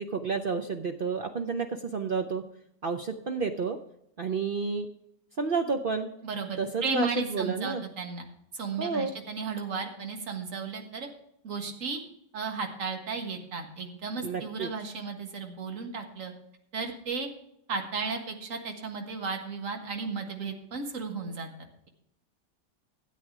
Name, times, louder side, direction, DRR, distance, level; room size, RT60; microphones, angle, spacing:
voice 1, 0.0-2.4 2.8-3.8 4.2-4.9 5.4-6.1 6.6-7.8 8.8-9.1 14.2-14.7, right 5 dB, 80° right, 5 dB, 0.4 m, -30 dB
voice 2, 6.2-8.3 8.5-11.1 11.4-12.0 12.3-16.3 16.7-17.3 17.7-21.5, right 4 dB, 50° right, 4 dB, 1.9 m, -34 dB
13.0 x 8.5 x 4.7 m, 0.75 s
omnidirectional pair, 1.9 m